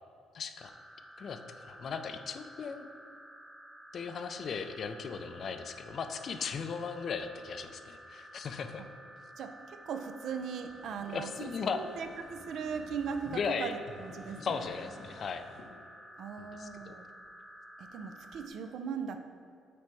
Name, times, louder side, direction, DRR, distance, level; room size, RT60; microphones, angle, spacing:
voice 1, 0.3-0.7 1.2-2.9 3.9-8.8 11.1-11.8 13.3-13.7 14.4-15.5 16.4-16.9, left 6 dB, 50° left, 8 dB, 0.4 m, -37 dB
sound 1, 0.6-18.5, equal, 10° right, 0.5 m, -52 dB
voice 2, 9.4-14.6 16.2-17.0 17.8-19.2, right 6 dB, 65° right, 7 dB, 0.4 m, -39 dB
sound 2, 10.3-13.4 13.8-15.7, left 3 dB, 70° left, 0.8 m, -53 dB
6.1 x 3.4 x 4.5 m, 2.2 s
cardioid pair, 100°, 0 cm